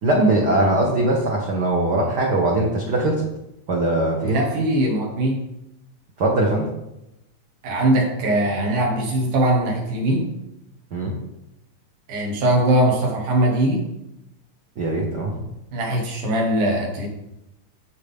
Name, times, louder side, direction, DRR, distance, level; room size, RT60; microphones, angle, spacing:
voice 1, 0.0-3.2 3.7-4.4 6.2-6.7 10.9-11.1 14.8-15.3, right 2 dB, 70° right, -1 dB, 0.9 m, -20 dB
voice 2, 4.2-5.4 7.6-10.3 12.1-13.8 15.7-17.1, right 1 dB, 85° right, 0 dB, 3.2 m, -21 dB
13.5 x 4.6 x 3.5 m, 0.88 s
omnidirectional pair, 3.5 m